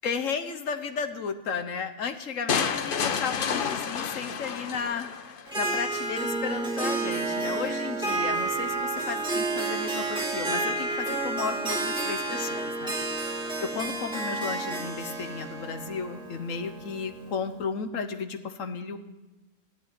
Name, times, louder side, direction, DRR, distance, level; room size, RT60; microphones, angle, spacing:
voice 1, 0.0-5.1 5.6-12.9 13.6-19.0, left 5 dB, 75° left, 8 dB, 1.4 m, -34 dB
sound 1, 2.5-5.5, left 6 dB, 50° left, 0.8 m, -29 dB
Harp, 5.5-17.3, right 2 dB, 5° right, 2.2 m, -30 dB
14.5 x 7.5 x 9.3 m, 1.0 s
omnidirectional pair, 1.3 m